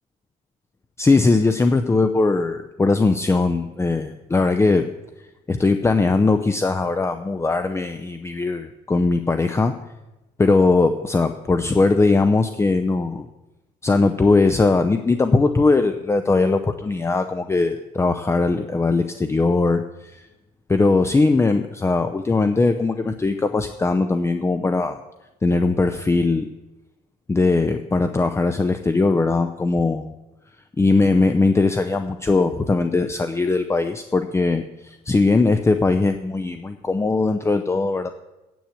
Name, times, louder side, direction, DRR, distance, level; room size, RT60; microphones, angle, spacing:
voice 1, 1.0-4.9 5.5-9.8 10.4-13.3 13.8-20.2 20.7-25.0 25.4-26.5 27.3-30.1 30.8-38.1, left 3 dB, 15° left, 8 dB, 0.7 m, -20 dB
9.3 x 8.6 x 8.3 m, 1.0 s
cardioid pair, 110°, 17 cm